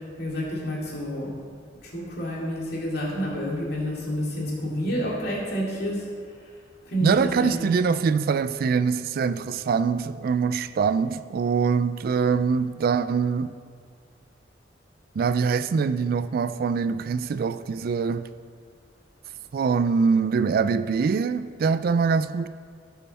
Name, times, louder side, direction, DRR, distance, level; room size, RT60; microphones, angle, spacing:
voice 1, 0.2-1.3 1.8-6.1 6.9-7.6, equal, 60° left, 2.4 m, -29 dB
voice 2, 7.0-13.5 15.2-18.3 19.5-22.5, right 5 dB, 55° right, 0.3 m, -23 dB
15.0 x 5.5 x 4.1 m
head